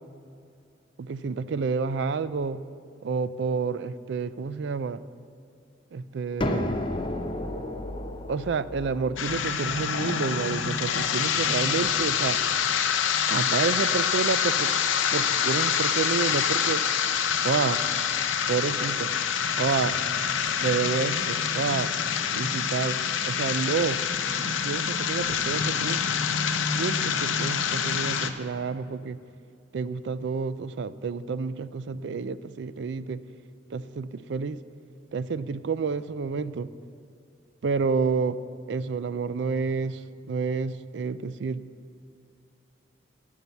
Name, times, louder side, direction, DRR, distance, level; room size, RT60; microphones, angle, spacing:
voice 1, 1.0-2.6 3.0-5.0 5.9-6.8 8.3-12.4 13.3-14.7 15.1-16.8 17.4-17.8 18.5-19.1 19.6-20.0 20.6-21.9 22.3-24.0 24.5-26.0 26.7-29.2 29.7-33.2 33.7-34.6 35.1-36.7 37.6-38.4 38.7-40.0 40.3-41.6, right 5 dB, 65° right, 15 dB, 0.4 m, -29 dB
sound 1, 6.4-12.0, left 1 dB, 25° left, 0.6 m, -34 dB
sound 2, 9.2-28.3, left 7 dB, 85° left, 0.7 m, -26 dB
12.0 x 5.6 x 8.1 m, 2.4 s
head